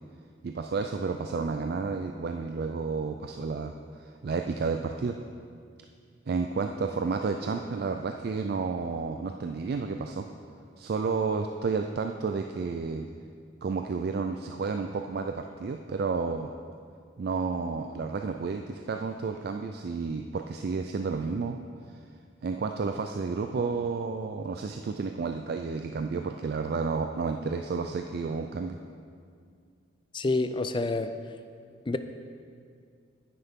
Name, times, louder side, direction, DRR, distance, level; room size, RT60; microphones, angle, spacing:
voice 1, 0.4-5.2 6.3-10.3 10.8-13.1 13.6-16.5 17.2-21.6 22.4-28.8, right 4 dB, 50° right, 5 dB, 0.3 m, -31 dB
voice 2, 30.1-31.1 31.9-32.0, left 2 dB, 25° left, 10 dB, 0.4 m, -27 dB
9.6 x 9.4 x 3.6 m, 2.2 s
head